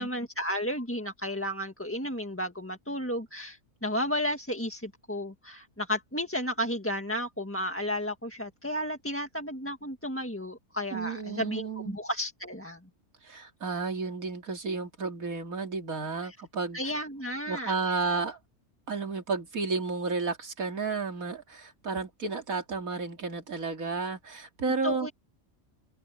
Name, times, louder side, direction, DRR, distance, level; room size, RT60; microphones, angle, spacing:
voice 1, 0.0-12.8 16.2-16.4 16.7-18.0 24.8-25.1, equal, 10° left, 1.7 m, -33 dB
voice 2, 10.9-12.0 13.2-16.8 17.5-18.4 18.9-25.1, right 4 dB, 90° right, 2.9 m, -32 dB
omnidirectional pair, 1.4 m